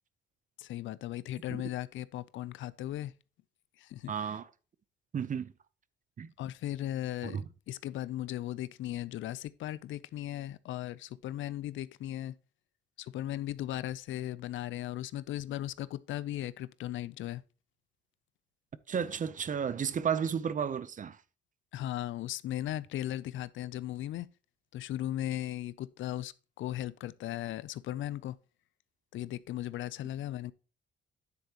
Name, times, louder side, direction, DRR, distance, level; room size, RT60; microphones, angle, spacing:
voice 1, 0.6-3.1 3.8-4.4 6.4-12.4 13.0-17.4 21.7-24.3 24.7-28.4 29.1-30.5, left 13 dB, 75° left, 0.5 m, -37 dB
voice 2, 4.1-4.5 5.1-5.5 6.2-6.3 7.2-7.4 18.9-21.2, right 7 dB, 40° right, 0.7 m, -33 dB
9.8 x 8.1 x 2.9 m
cardioid pair, 90°, 20 cm